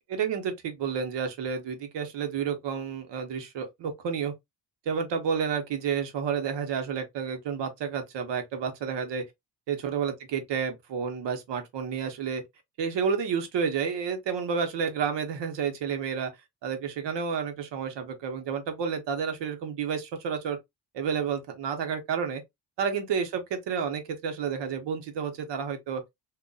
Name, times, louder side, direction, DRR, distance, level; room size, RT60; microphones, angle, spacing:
voice 1, 0.1-4.3 4.9-9.2 9.7-12.4 12.8-16.3 16.6-20.6 20.9-22.4 22.8-26.0, right 6 dB, 80° right, 1.0 m, -30 dB
3.9 x 2.4 x 2.3 m
wide cardioid pair, 170°, 42 cm